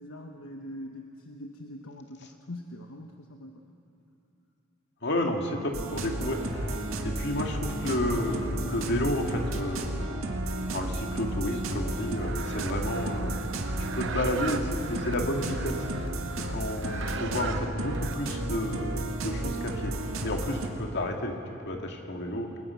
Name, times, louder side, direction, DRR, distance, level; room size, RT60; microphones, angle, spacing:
voice 1, 0.0-3.6, left 1 dB, 75° left, 3 dB, 1.2 m, -43 dB
voice 2, 5.0-10.0 10.7-13.4 13.8-15.9 16.4-19.9 20.2-21.4 21.7-22.5, left 1 dB, 55° left, 2 dB, 2.3 m, -31 dB
sound 1, 5.7-20.7, right 1 dB, 85° right, 2.0 m, -33 dB
sound 2, 12.2-18.1, right 6 dB, 65° right, 0.9 m, -40 dB
29.0 x 20.5 x 5.8 m, 2.8 s
head